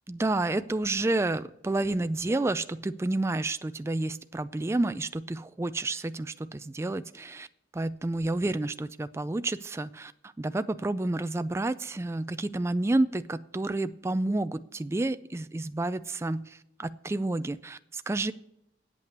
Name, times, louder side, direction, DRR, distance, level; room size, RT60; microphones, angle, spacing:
voice 1, 0.1-7.5 7.7-18.3, right 2 dB, 15° right, 13 dB, 0.3 m, -30 dB
8.5 x 8.3 x 8.0 m, 0.81 s
head